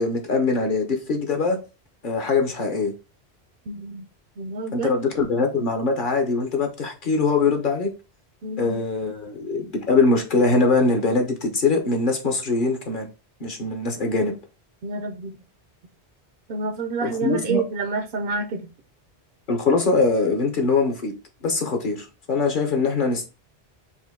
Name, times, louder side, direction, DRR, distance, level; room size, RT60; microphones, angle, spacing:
voice 1, 0.0-1.6 2.0-2.9 4.7-7.9 8.6-13.1 13.4-14.3 17.0-17.6 19.5-21.1 21.4-23.2, left 3 dB, 50° left, 1.0 m, -22 dB
voice 2, 3.7-4.0 4.4-4.9 8.4-8.8 14.8-15.4 16.5-18.6, right 4 dB, 60° right, 0.7 m, -28 dB
4.3 x 2.6 x 3.6 m
omnidirectional pair, 1.1 m